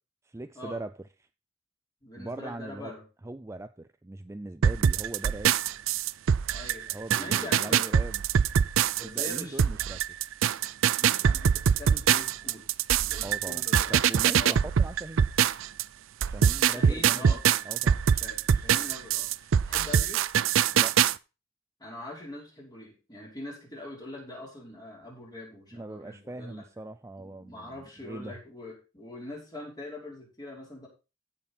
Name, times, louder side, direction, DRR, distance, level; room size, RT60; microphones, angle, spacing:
voice 1, 0.2-1.0 2.2-2.9 3.2-5.6 6.9-8.2 9.0-10.0 13.2-13.6 13.9-15.2 16.2-18.0 20.7-21.0 25.7-28.4, right 2 dB, 15° right, 0.4 m, -40 dB
voice 2, 2.0-3.0 6.5-8.1 9.0-9.8 11.0-12.7 12.9-13.9 14.4-14.6 16.7-17.4 18.1-20.2 21.8-26.7 27.2-30.9, left 1 dB, 20° left, 5.3 m, -43 dB
sound 1, 4.6-15.8 16.2-21.1, right 8 dB, 70° right, 0.4 m, -23 dB
15.5 x 6.1 x 4.3 m
head